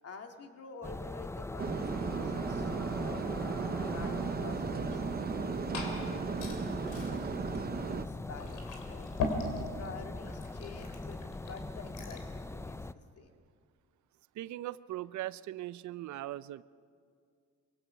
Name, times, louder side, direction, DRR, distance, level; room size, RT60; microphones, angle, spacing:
voice 1, 0.0-3.4 3.8-7.3 7.7-9.1 9.4-12.8 13.2-13.4, left 4 dB, 55° left, 4 dB, 2.1 m, -49 dB
sound 1, 0.8-12.9, left 2 dB, 10° left, 0.5 m, -41 dB
sound 2, 1.6-8.0, right 5 dB, 30° right, 0.8 m, -35 dB
Liquid, 5.2-12.3, left 3 dB, 80° left, 3.4 m, -41 dB
voice 2, 14.3-16.6, right 14 dB, 70° right, 17 dB, 0.6 m, -39 dB
24.5 x 17.0 x 6.4 m, 2.1 s
cardioid pair, 90°, 30 cm